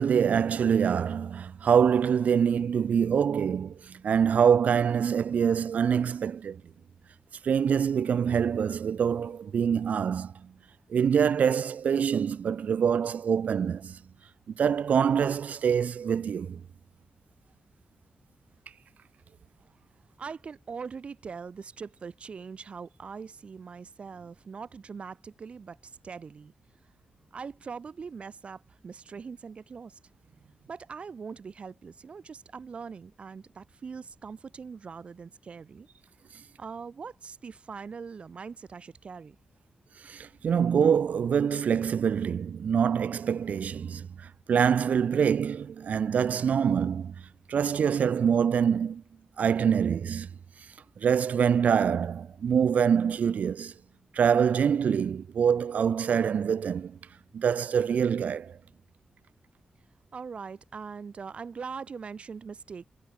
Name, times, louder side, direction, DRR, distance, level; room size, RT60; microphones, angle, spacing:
voice 1, 0.0-6.6 7.4-10.5 10.9-14.0 14.6-16.6 40.0-47.1 47.5-49.0 49.4-50.3 51.0-53.7 54.1-57.0 57.3-58.6, right 7 dB, 75° right, 1.2 m, -25 dB
voice 2, 20.2-26.5 27.3-30.0 30.7-35.9 36.6-39.3 60.1-62.9, right 5 dB, 50° right, 1.6 m, -41 dB
wide cardioid pair, 150°, 3 cm